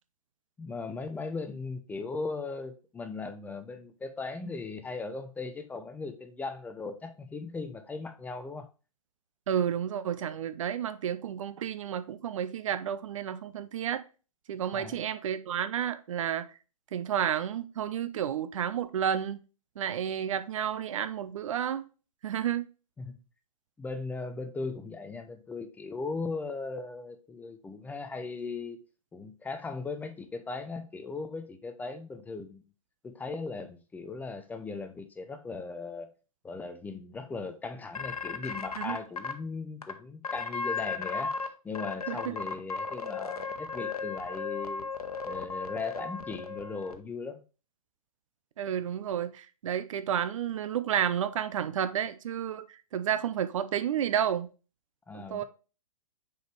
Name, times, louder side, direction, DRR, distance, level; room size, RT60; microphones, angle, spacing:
voice 1, 0.6-8.7 14.7-15.0 23.0-23.2 23.8-28.8 29.1-32.6 33.0-36.1 36.4-41.4 41.6-44.9 45.2-47.4 55.1-55.4, left 4 dB, 10° left, 0.6 m, -38 dB
voice 2, 9.5-14.0 14.5-16.5 16.9-19.4 19.8-21.8 22.2-22.6 38.8-39.0 42.1-42.3 48.6-54.5 55.1-55.4, right 9 dB, 60° right, 0.7 m, -31 dB
sound 1, 37.9-39.3 39.8-39.9 40.2-41.5 41.7-46.9, left 5 dB, 80° left, 1.0 m, -35 dB
6.5 x 4.7 x 3.2 m
hypercardioid pair, 120°, 19 cm